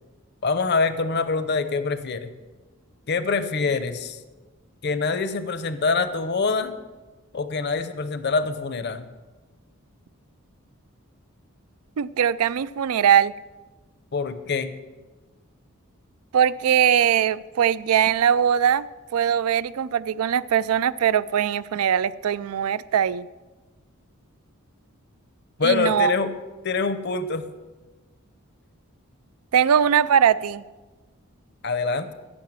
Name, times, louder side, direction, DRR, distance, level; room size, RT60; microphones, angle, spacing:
voice 1, 0.4-2.3 3.1-4.2 4.8-6.7 7.3-9.1 14.1-14.7 25.6-26.3 26.6-27.5 31.6-32.1, left 4 dB, 50° left, 11 dB, 0.7 m, -25 dB
voice 2, 12.0-13.3 16.3-18.8 19.1-23.3 25.6-26.1 29.5-30.6, right 8 dB, 90° right, 17 dB, 0.4 m, -21 dB
15.0 x 5.7 x 7.6 m, 1.3 s
head